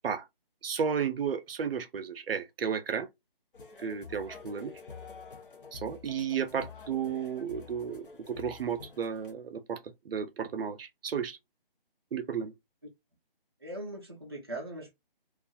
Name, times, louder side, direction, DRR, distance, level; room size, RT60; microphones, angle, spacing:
voice 1, 0.6-3.1 3.8-4.8 5.7-11.4 12.1-12.5, right 7 dB, 75° right, 0.5 m, -33 dB
sound 1, 3.5-9.3, left 5 dB, 65° left, 0.8 m, -48 dB
voice 2, 13.6-14.9, right 1 dB, 25° right, 0.5 m, -40 dB
2.4 x 2.3 x 2.5 m
hypercardioid pair, 175°, 29 cm